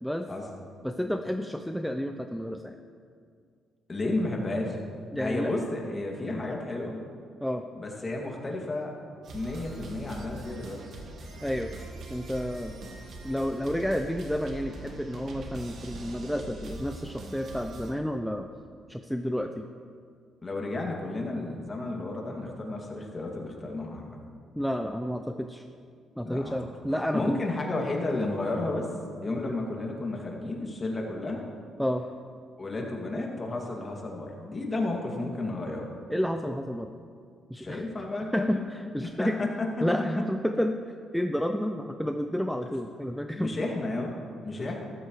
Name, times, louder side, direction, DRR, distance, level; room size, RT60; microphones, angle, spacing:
voice 1, 0.8-2.8 5.1-5.5 7.4-7.6 11.4-11.7 12.1-12.8 13.2-18.5 18.9-19.7 24.6-25.6 26.2-27.4 29.4-29.5 31.8-32.0 36.1-36.9 37.5-37.8 38.3-39.4 39.8-43.7 44.6-44.7, equal, ahead, 5 dB, 0.5 m, -30 dB
voice 2, 3.9-4.8 5.2-7.0 7.8-8.9 9.3-10.8 20.4-24.2 26.2-26.5 27.1-28.9 29.2-31.4 32.6-35.9 37.6-38.7 39.0-39.7 40.1-40.2 43.4-44.1 44.4-44.8, left 2 dB, 30° left, 0 dB, 2.3 m, -32 dB
sound 1, 9.2-17.9, right 2 dB, 60° right, 1.5 m, -42 dB
14.0 x 13.0 x 3.2 m, 2.2 s
cardioid pair, 90°, 0 cm